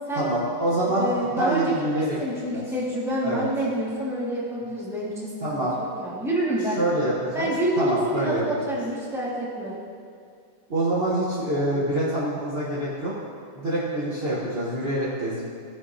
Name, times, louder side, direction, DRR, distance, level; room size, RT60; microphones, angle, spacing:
voice 1, 0.2-2.2 2.5-2.6 3.2-3.5 5.4-5.7 6.8-7.5 7.8-8.4 10.7-13.1 13.5-15.4, right 1 dB, 35° right, -8 dB, 1.3 m, -25 dB
voice 2, 0.9-6.8 7.3-9.8, right 1 dB, ahead, -7 dB, 1.6 m, -28 dB
16.0 x 5.8 x 2.7 m, 2.2 s
omnidirectional pair, 2.0 m